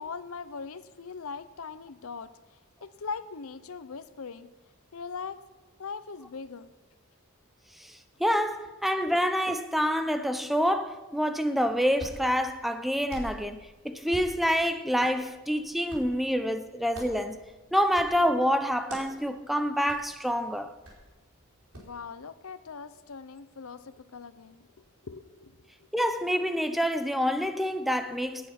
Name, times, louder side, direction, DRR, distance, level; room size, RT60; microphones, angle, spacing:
voice 1, 0.0-2.3 2.8-4.5 4.9-5.4 5.8-6.7 21.7-25.9, left 5 dB, 80° left, 0.7 m, -40 dB
voice 2, 7.8-17.4 17.7-20.7 25.9-28.5, equal, ahead, 0.6 m, -27 dB
Hands, 11.6-22.0, right 1 dB, 80° right, 4.5 m, -48 dB
17.5 x 8.6 x 5.8 m
head